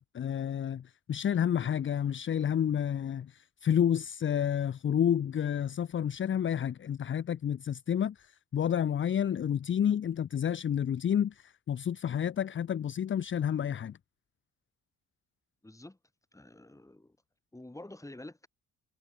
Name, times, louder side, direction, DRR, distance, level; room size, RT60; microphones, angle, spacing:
voice 1, 0.0-14.0, left 9 dB, 40° left, 0.7 m, -30 dB
voice 2, 15.6-16.0 16.3-17.2 17.5-18.5, left 1 dB, 10° left, 5.8 m, -48 dB
cardioid pair, 90°, 30 cm